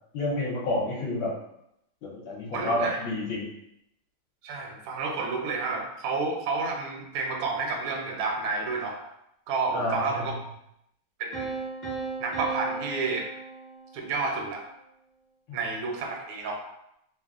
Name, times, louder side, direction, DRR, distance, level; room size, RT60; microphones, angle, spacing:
voice 1, 0.1-1.3 2.0-3.5 9.7-10.3 15.5-15.6, left 1 dB, 75° left, -4 dB, 1.4 m, -29 dB
voice 2, 2.5-3.0 4.4-9.0 9.5-10.3 11.2-11.5 12.2-13.3 13.9-14.6 15.5-16.6, right 4 dB, 85° right, 2 dB, 1.4 m, -30 dB
Piano, 11.3-14.2, right 4 dB, 40° left, 0.6 m, -36 dB
3.4 x 2.1 x 2.3 m, 0.79 s
omnidirectional pair, 2.3 m